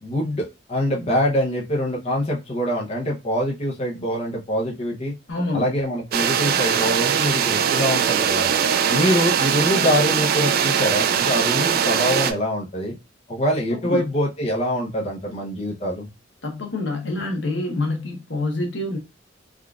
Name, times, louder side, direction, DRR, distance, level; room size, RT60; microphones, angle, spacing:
voice 1, 0.0-5.1 5.5-8.5 8.9-13.0 13.3-16.1, equal, 35° left, 0.7 m, -24 dB
voice 2, 5.3-5.6 13.7-14.0 16.4-19.0, left 2 dB, 75° left, 0.9 m, -26 dB
sound 1, 6.1-12.3, right 8 dB, 55° right, 0.3 m, -21 dB
3.6 x 2.4 x 2.3 m
head